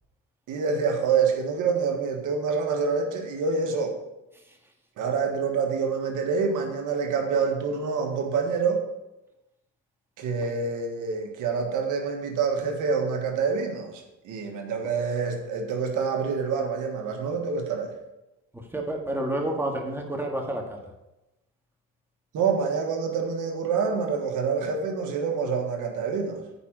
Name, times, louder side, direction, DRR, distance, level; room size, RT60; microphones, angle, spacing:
voice 1, 0.5-4.0 5.0-8.8 10.2-17.9 22.3-26.4, right 5 dB, 80° right, 3 dB, 1.5 m, -27 dB
voice 2, 18.5-20.8, right 1 dB, 10° right, 1 dB, 1.9 m, -29 dB
9.7 x 5.0 x 6.2 m, 0.96 s
cardioid pair, 90°, 30 cm